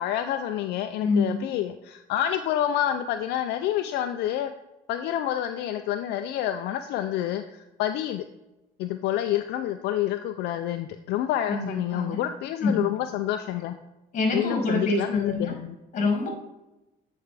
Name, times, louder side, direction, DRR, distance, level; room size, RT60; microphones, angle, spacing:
voice 1, 0.0-4.5 4.9-8.2 8.8-13.7 14.3-15.7, left 11 dB, 80° left, 7 dB, 0.4 m, -28 dB
voice 2, 1.0-1.5 11.5-12.2 12.6-12.9 14.1-15.5 15.9-16.3, left 3 dB, 45° left, 2 dB, 2.1 m, -26 dB
8.7 x 4.5 x 3.4 m, 0.97 s
cardioid pair, 110°, 17 cm